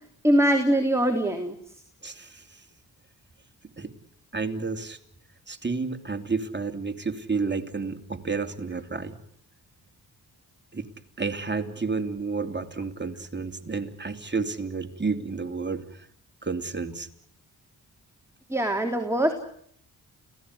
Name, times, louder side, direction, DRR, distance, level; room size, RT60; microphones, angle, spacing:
voice 1, 0.2-1.6 18.5-19.3, right 1 dB, 5° right, 4 dB, 3.5 m, -22 dB
voice 2, 2.0-2.4 3.8-3.9 4.3-5.0 5.5-9.1 10.7-10.9 11.2-15.8 16.4-17.1, right 4 dB, 25° right, 6 dB, 3.0 m, -30 dB
29.5 x 17.0 x 9.7 m, 0.67 s
cardioid pair, 60°, 40 cm